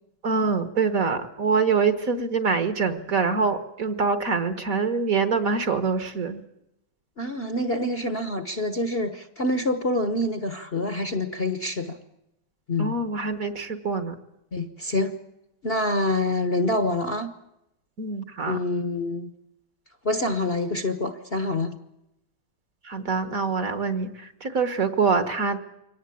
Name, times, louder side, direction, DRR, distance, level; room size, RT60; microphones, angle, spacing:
voice 1, 0.2-6.4 12.8-14.1 18.0-18.6 22.8-25.6, right 5 dB, 45° right, 9 dB, 1.7 m, -25 dB
voice 2, 7.2-12.0 12.7-13.0 14.5-15.1 15.6-17.3 18.5-19.3 20.0-21.8, left 2 dB, 35° left, 9 dB, 1.1 m, -26 dB
24.0 x 18.5 x 8.5 m, 0.87 s
omnidirectional pair, 2.1 m